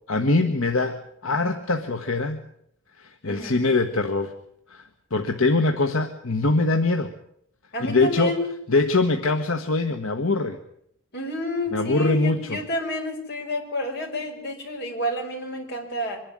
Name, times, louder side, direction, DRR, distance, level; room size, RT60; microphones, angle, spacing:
voice 1, 0.1-2.4 3.0-4.3 4.7-7.1 7.8-8.3 8.7-10.6 11.7-12.6, left 3 dB, 75° left, 5 dB, 1.4 m, -23 dB
voice 2, 3.3-3.6 7.7-8.5 11.1-16.2, left 1 dB, 55° left, 1 dB, 5.5 m, -29 dB
25.0 x 11.0 x 10.0 m, 0.72 s
head